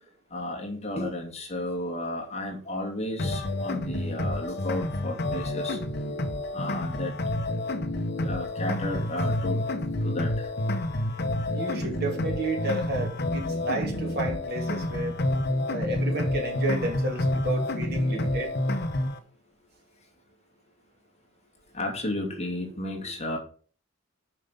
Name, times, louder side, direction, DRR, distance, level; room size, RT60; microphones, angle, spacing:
voice 1, 0.3-5.8 6.5-7.1 8.2-9.6 10.0-10.5 21.7-23.4, left 1 dB, 30° left, 1 dB, 2.3 m, -33 dB
sound 1, 3.2-19.2, left 1 dB, 50° left, 0.8 m, -29 dB
voice 2, 11.5-15.2 15.7-18.5, right 2 dB, 50° right, 1 dB, 2.7 m, -32 dB
7.4 x 5.4 x 6.7 m, 0.42 s
head